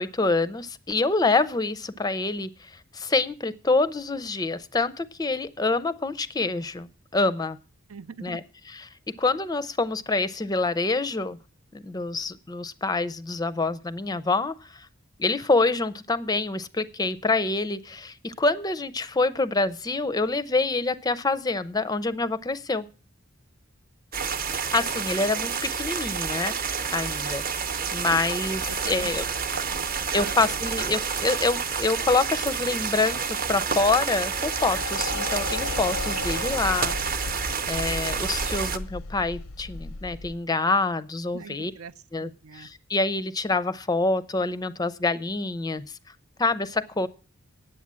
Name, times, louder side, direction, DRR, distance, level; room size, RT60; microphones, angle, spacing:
voice 1, 0.0-6.9 7.1-7.6 8.2-8.4 8.7-8.9 9.2-11.4 11.7-14.9 15.2-22.9 24.4-26.5 26.9-27.4 27.9-29.3 30.1-41.7 42.1-45.9 46.4-47.1, left 3 dB, 20° left, 0.4 m, -26 dB
voice 2, 7.9-8.4 28.7-30.6 41.3-41.9 42.2-42.7, right 5 dB, 90° right, 0.6 m, -42 dB
sound 1, 24.1-38.8, right 6 dB, 40° right, 0.8 m, -29 dB
sound 2, 28.4-40.4, left 3 dB, 90° left, 0.6 m, -37 dB
9.3 x 7.9 x 7.3 m
head